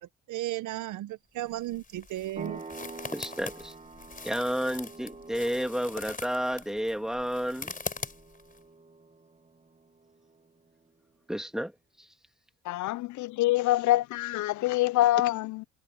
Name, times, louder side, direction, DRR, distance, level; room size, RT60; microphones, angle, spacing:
voice 1, 0.3-2.6, right 15 dB, 80° right, 0.9 m, -34 dB
sound 1, 1.4-8.6, left 4 dB, 25° left, 4.8 m, -42 dB
sound 2, 2.4-10.7, right 3 dB, 25° right, 1.5 m, -47 dB
voice 2, 3.1-3.7 4.2-7.7 11.3-11.7 12.0-12.1, equal, ahead, 2.7 m, -31 dB
voice 3, 12.7-15.6, left 16 dB, 75° left, 0.5 m, -25 dB
cardioid pair, 90°, 30 cm